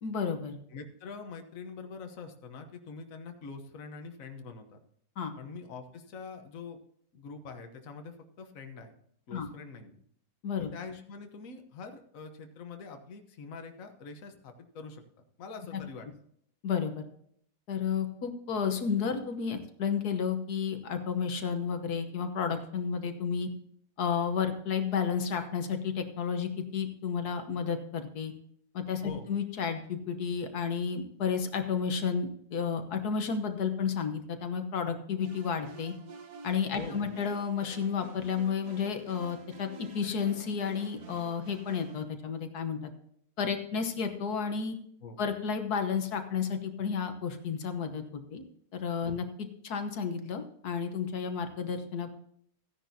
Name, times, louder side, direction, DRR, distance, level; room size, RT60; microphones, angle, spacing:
voice 1, 0.0-0.5 5.2-5.3 9.3-9.5 10.4-10.7 16.6-17.0 17.7-23.5 24.0-28.3 28.7-35.9 36.4-42.9 43.4-44.8 45.2-48.4 48.7-52.1, left 6 dB, 85° left, 6 dB, 1.7 m, -32 dB
voice 2, 0.7-4.8 5.4-6.8 7.1-8.9 9.3-10.0 10.7-15.0 15.4-16.1 29.0-29.3 36.7-37.1 45.0-45.2 49.1-49.2, left 4 dB, 60° left, 5 dB, 1.5 m, -44 dB
sound 1, 35.2-42.0, right 4 dB, 65° right, 1.6 m, -49 dB
15.0 x 10.5 x 2.7 m, 0.67 s
omnidirectional pair, 1.6 m